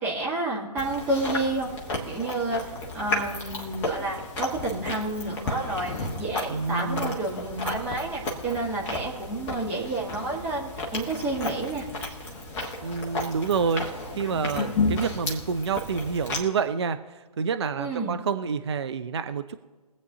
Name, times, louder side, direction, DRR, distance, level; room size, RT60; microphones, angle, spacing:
voice 1, 0.0-1.7 2.1-2.6 2.9-11.8 17.8-18.2, right 2 dB, 10° right, -4 dB, 1.3 m, -30 dB
Chewing mastication, 0.8-16.4, left 2 dB, 10° left, 0.8 m, -33 dB
voice 2, 6.5-7.2 12.8-19.5, right 5 dB, 40° right, 9 dB, 0.5 m, -28 dB
23.0 x 8.0 x 2.7 m, 1.3 s
figure-of-eight pair, 150°, 21 cm